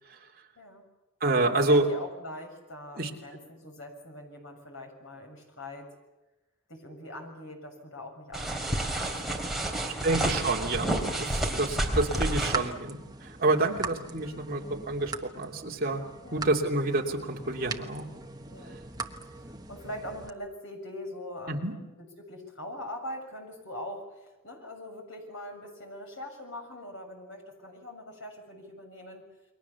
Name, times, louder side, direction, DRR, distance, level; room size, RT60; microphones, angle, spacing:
voice 1, 0.5-0.8 1.4-5.9 6.7-10.6 11.3-11.6 13.6-13.9 16.2-16.5 18.5-18.8 19.2-29.2, left 1 dB, 60° left, 3 dB, 6.8 m, -43 dB
voice 2, 1.2-1.9 3.0-3.1 9.9-16.0 16.3-18.0 21.5-21.7, right 2 dB, 40° right, 1 dB, 2.8 m, -28 dB
sound 1, 8.3-12.7, right 1 dB, ahead, 3.5 m, -30 dB
sound 2, 11.5-20.3, right 4 dB, 15° right, 1.2 m, -41 dB
29.5 x 23.0 x 7.1 m, 1.0 s
head